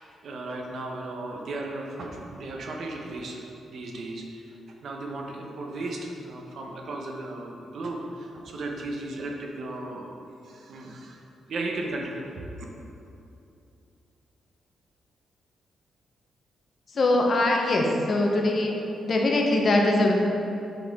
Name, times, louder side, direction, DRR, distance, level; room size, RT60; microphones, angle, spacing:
voice 1, 0.2-4.6 4.8-10.1 10.4-11.2 11.5-12.3, right 2 dB, 55° right, 0 dB, 0.7 m, -35 dB
voice 2, 16.9-18.7 19.0-20.1, left 2 dB, 35° left, 1 dB, 0.6 m, -22 dB
7.7 x 4.3 x 3.4 m, 2.8 s
wide cardioid pair, 170°, 0 cm